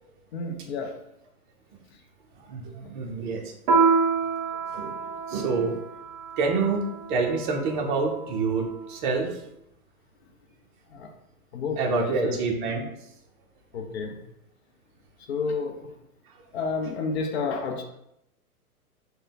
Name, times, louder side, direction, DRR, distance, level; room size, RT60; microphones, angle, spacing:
voice 1, 0.3-1.0 10.9-11.1 11.5-12.4 13.7-14.2 15.3-16.0 16.5-17.8, left 4 dB, 45° left, 3 dB, 0.6 m, -30 dB
voice 2, 2.5-3.5 4.7-5.8 6.4-6.8 7.1-9.4 11.8-12.9, right 4 dB, 35° right, 1 dB, 0.7 m, -27 dB
Piano, 3.7-8.6, right 5 dB, 60° right, 1.0 m, -27 dB
3.3 x 2.2 x 3.9 m, 0.81 s
hypercardioid pair, 130°, 45 cm